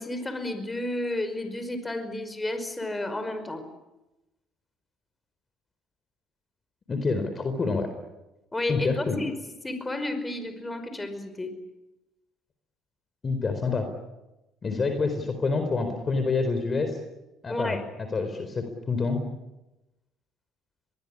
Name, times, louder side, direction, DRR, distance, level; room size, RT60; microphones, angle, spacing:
voice 1, 0.0-3.7 8.5-9.3 9.6-11.5 17.5-17.8, left 1 dB, 15° left, 9 dB, 5.3 m, -31 dB
voice 2, 6.9-7.9 8.7-9.2 13.2-13.9 14.6-17.0 17.4-17.8 18.1-19.2, left 4 dB, 35° left, 7 dB, 4.3 m, -27 dB
23.5 x 21.0 x 10.0 m, 1.0 s
hypercardioid pair, 65°, 0 cm